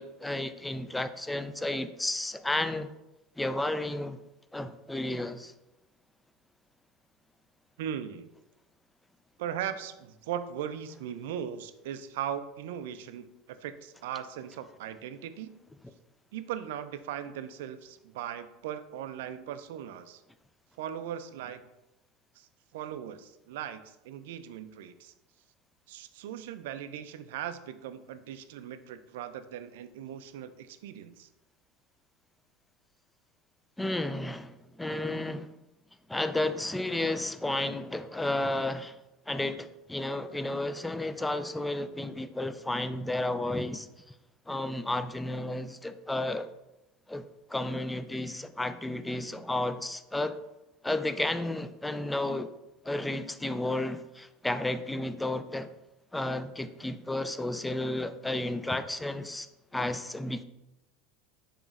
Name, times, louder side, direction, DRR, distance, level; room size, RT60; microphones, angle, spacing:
voice 1, 0.0-2.9 3.4-4.2 4.5-5.5 33.8-35.5 36.1-39.0 39.3-44.1 44.5-46.5 47.1-50.4 50.8-52.5 52.8-55.7 56.1-60.4, left 1 dB, 10° left, 0.3 m, -32 dB
voice 2, 7.8-8.3 9.4-15.5 16.3-20.2 20.8-21.6 22.4-25.1 25.9-31.3, right 9 dB, 75° right, 0.3 m, -39 dB
7.0 x 3.0 x 2.4 m
hypercardioid pair, 90°, 0 cm